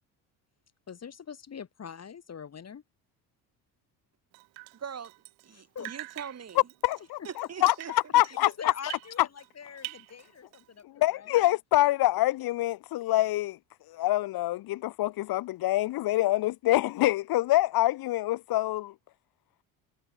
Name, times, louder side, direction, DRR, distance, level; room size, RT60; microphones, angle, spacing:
voice 1, 0.9-2.8 5.5-5.9 7.2-7.3 7.6-7.7 8.3-10.8 11.1-11.5, left 7 dB, 35° left, 1.8 m, -43 dB
Drip, 4.3-5.5 5.8-9.5 9.8-10.8, right 32 dB, 75° right, 6.2 m, -45 dB
voice 2, 4.7-5.1 5.4-6.7 7.2-7.9, right 7 dB, 35° right, 2.3 m, -41 dB
voice 3, 6.8-8.7 10.8-13.6 13.9-18.9, left 16 dB, 50° left, 0.8 m, -26 dB
hypercardioid pair, 65°, 46 cm